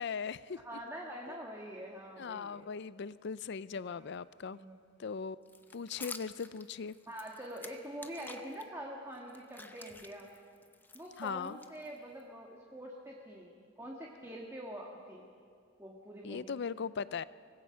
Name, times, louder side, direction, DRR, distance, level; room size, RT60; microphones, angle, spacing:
voice 1, 0.0-0.8 2.2-4.6 5.0-5.4 5.7-7.0 11.2-11.6 16.2-17.2, left 6 dB, 60° left, 17 dB, 0.5 m, -39 dB
voice 2, 0.6-2.7 3.9-4.1 4.5-4.7 7.1-10.3 10.9-15.3 15.8-16.6, equal, 15° right, -1 dB, 1.6 m, -45 dB
sound 1, 5.5-8.6 9.1-12.2, left 3 dB, 10° left, 0.8 m, -50 dB
24.5 x 19.0 x 5.7 m, 2.4 s
head